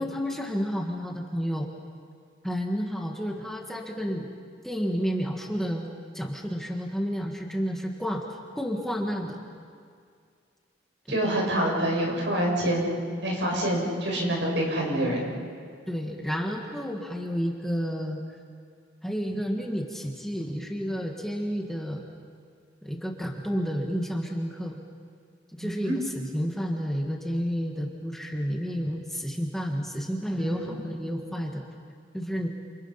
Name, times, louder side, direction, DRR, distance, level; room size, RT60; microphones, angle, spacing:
voice 1, 0.0-1.7 2.4-4.3 4.6-5.9 6.1-9.4 11.1-11.2 15.9-18.4 19.0-22.1 22.8-24.8 25.5-31.6 32.1-32.5, equal, ahead, 0 dB, 1.7 m, -31 dB
voice 2, 11.1-15.3 25.6-25.9 30.3-30.6, right 1 dB, 75° right, -2 dB, 7.1 m, -26 dB
29.0 x 28.5 x 5.8 m, 2.2 s
head